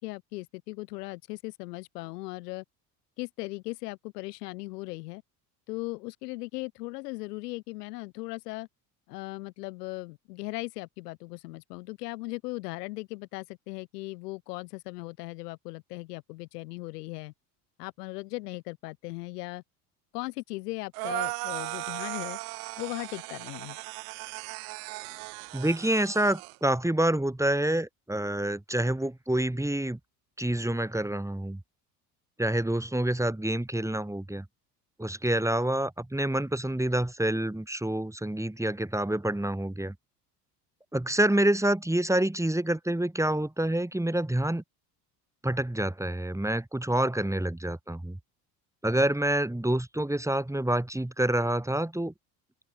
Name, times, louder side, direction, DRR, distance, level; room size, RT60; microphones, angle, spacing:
voice 1, 0.0-2.6 3.2-5.2 5.7-8.7 9.1-17.3 17.8-19.6 20.1-22.4 22.8-23.8, left 22 dB, 80° left, 4.6 m, -38 dB
sound 1, 20.9-26.6, right 31 dB, 75° right, 2.1 m, -37 dB
voice 2, 25.5-30.0 30.4-31.6 32.4-34.5 35.0-39.9 40.9-44.6 45.4-48.2 48.8-52.1, right 1 dB, 5° right, 5.7 m, -27 dB
hypercardioid pair, 70°, 47 cm